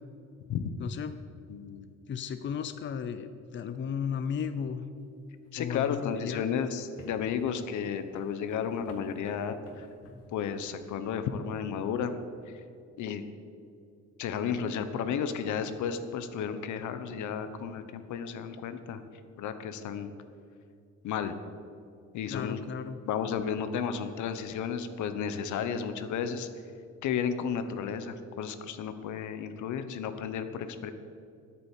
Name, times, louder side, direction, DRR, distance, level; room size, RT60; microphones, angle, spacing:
voice 1, 0.8-1.1 2.1-4.8 5.6-6.4 22.3-23.0, left 7 dB, 40° left, 10 dB, 0.7 m, -34 dB
voice 2, 1.5-1.9 5.5-9.9 10.3-12.2 12.5-12.6 13.0-13.2 14.2-19.0 19.4-20.1 21.0-21.4 22.1-22.6 23.0-26.5 27.0-30.9, left 7 dB, 80° left, 10 dB, 1.1 m, -33 dB
sound 1, 5.3-10.9, left 2 dB, 55° left, 2.2 m, -54 dB
10.5 x 9.0 x 8.3 m, 2.5 s
cardioid pair, 125°, 29 cm